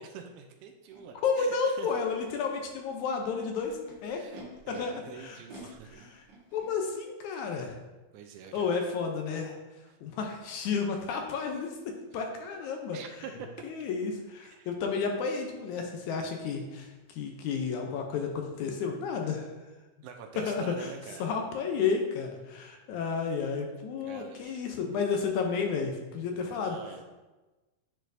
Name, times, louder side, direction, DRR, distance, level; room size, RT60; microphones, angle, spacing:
voice 1, 0.0-1.9 4.1-4.4 4.7-6.0 7.3-7.7 8.1-8.8 9.9-10.0 12.9-13.5 14.4-14.7 17.8-18.0 20.0-21.3 24.0-24.8 26.3-27.0, right 7 dB, 80° right, 4 dB, 1.9 m, -46 dB
Animal, 0.9-1.0 1.8-2.3 3.1-4.8 5.5-6.7, equal, 55° right, 1.9 m, -50 dB
voice 2, 1.2-4.2 4.7-5.4 6.1-6.2 6.5-7.7 8.5-9.6 10.0-13.0 13.6-19.5 20.5-20.9 21.2-26.8, left 5 dB, 75° left, 3 dB, 1.9 m, -32 dB
9.8 x 4.4 x 2.6 m, 1.2 s
omnidirectional pair, 3.7 m